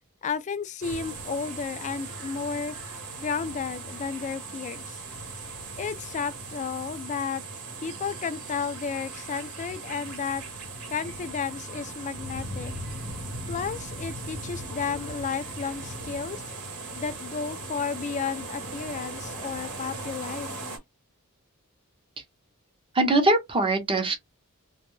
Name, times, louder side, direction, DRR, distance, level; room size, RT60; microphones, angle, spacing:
voice 1, 0.2-2.8 3.2-5.0 5.8-7.4 7.8-10.4 10.9-12.7 13.5-16.4 16.9-20.8, left 6 dB, 35° left, 0.3 m, -33 dB
sound 1, 0.8-20.8, right 2 dB, 85° right, 1.0 m, -38 dB
voice 2, 22.9-24.2, right 2 dB, 25° right, 0.6 m, -22 dB
2.2 x 2.1 x 3.0 m
head